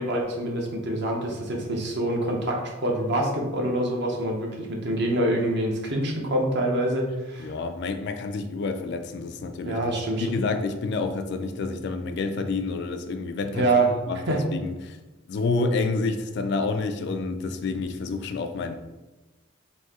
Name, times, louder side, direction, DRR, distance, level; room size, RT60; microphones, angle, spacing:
voice 1, 0.0-7.5 9.6-10.3 13.5-13.9 14.3-14.4, right 1 dB, 50° right, 0.7 m, -25 dB
voice 2, 7.4-9.8 10.1-15.0 15.3-18.8, left 3 dB, 50° left, 0.3 m, -29 dB
4.1 x 2.7 x 3.6 m
head